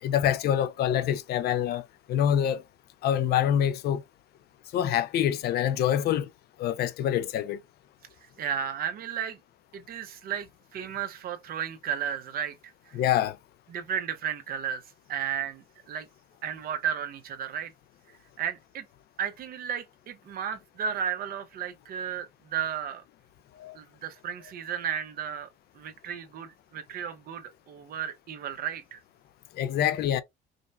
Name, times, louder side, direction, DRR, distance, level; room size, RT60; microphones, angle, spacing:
voice 1, 0.0-2.6 3.0-4.0 4.7-6.3 6.6-7.6 12.9-13.4 23.5-23.8 29.5-30.2, left 10 dB, 70° left, 0.6 m, -26 dB
voice 2, 8.2-9.4 9.7-12.6 12.9-13.0 13.7-14.8 15.1-16.1 16.4-17.7 18.4-18.8 19.2-23.0 23.7-25.5 25.7-29.0, right 8 dB, 60° right, 0.8 m, -34 dB
5.0 x 2.1 x 2.5 m
cardioid pair, 110°, 17 cm